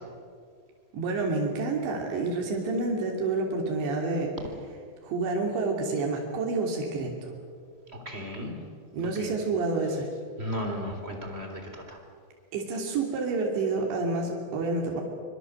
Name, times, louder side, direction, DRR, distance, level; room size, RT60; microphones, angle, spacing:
voice 1, 0.9-4.3 5.0-7.3 8.9-10.1 12.5-15.0, right 3 dB, 85° right, 0 dB, 5.2 m, -28 dB
voice 2, 7.9-8.5 9.2-9.3 10.4-12.0, equal, 15° right, 3 dB, 3.5 m, -35 dB
25.0 x 25.0 x 7.9 m, 2.2 s
omnidirectional pair, 5.0 m